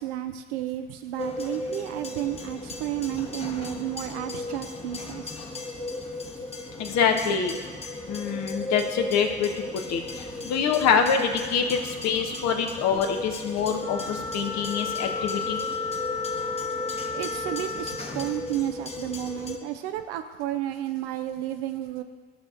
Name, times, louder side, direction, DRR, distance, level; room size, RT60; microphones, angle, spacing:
voice 1, 0.0-5.4 17.1-22.0, right 12 dB, 80° right, 8 dB, 0.5 m, -32 dB
sound 1, 1.2-19.6, left 2 dB, 20° left, 1.0 m, -36 dB
voice 2, 6.8-7.6 8.1-15.6, left 6 dB, 60° left, 5 dB, 1.0 m, -25 dB
Wind instrument woodwind instrument, 13.8-18.1, left 4 dB, 85° left, 2.0 m, -32 dB
12.5 x 6.1 x 2.5 m, 1.4 s
hypercardioid pair, 55°, 30 cm